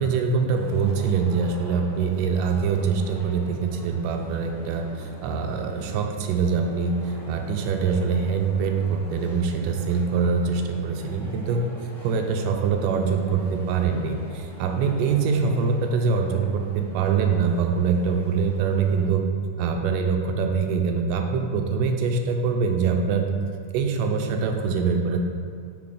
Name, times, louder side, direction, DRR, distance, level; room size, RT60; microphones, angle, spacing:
voice 1, 0.0-7.0 7.3-11.6 12.0-19.3 19.6-23.3 23.7-25.2, right 5 dB, 85° right, 4 dB, 2.1 m, -24 dB
sound 1, 0.5-19.1, equal, 45° left, 1.0 m, -45 dB
5.9 x 4.0 x 4.9 m, 2.2 s
omnidirectional pair, 3.8 m